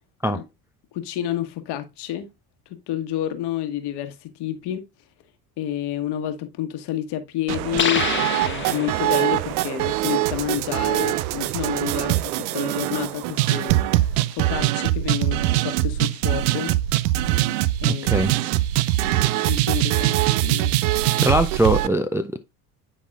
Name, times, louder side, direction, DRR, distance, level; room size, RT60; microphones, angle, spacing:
voice 1, 0.9-2.3 2.7-4.8 5.6-16.7 17.8-18.1 19.5-20.7, left 12 dB, 60° left, 1.3 m, -29 dB
sound 1, 7.5-21.9, right 15 dB, 75° right, 0.5 m, -22 dB
sound 2, 7.8-9.3, left 6 dB, 25° left, 1.1 m, -26 dB
voice 2, 18.0-18.3 21.2-22.4, right 1 dB, 5° right, 0.4 m, -21 dB
9.8 x 4.1 x 2.4 m
hypercardioid pair, 65°, 46 cm